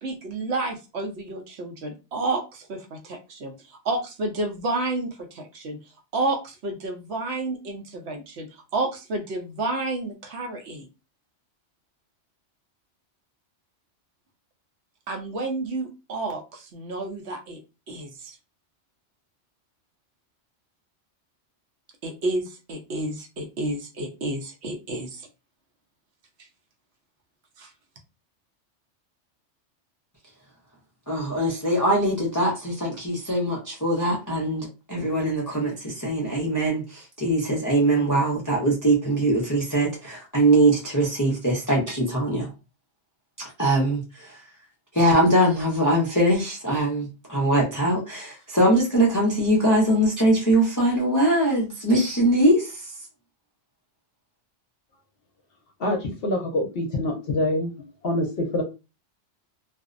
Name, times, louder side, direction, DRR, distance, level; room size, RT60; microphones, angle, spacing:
voice 1, 0.0-5.8 6.1-10.9 15.1-17.6 17.9-18.4 22.0-25.3 27.6-27.7, right 2 dB, 70° right, 3 dB, 0.9 m, -30 dB
voice 2, 31.1-42.5 43.6-44.4 44.9-52.8, right 1 dB, 25° left, -2 dB, 0.4 m, -22 dB
voice 3, 55.8-57.7 58.0-58.6, left 1 dB, 60° left, 2 dB, 0.8 m, -25 dB
2.5 x 2.0 x 2.4 m, 0.29 s
omnidirectional pair, 1.2 m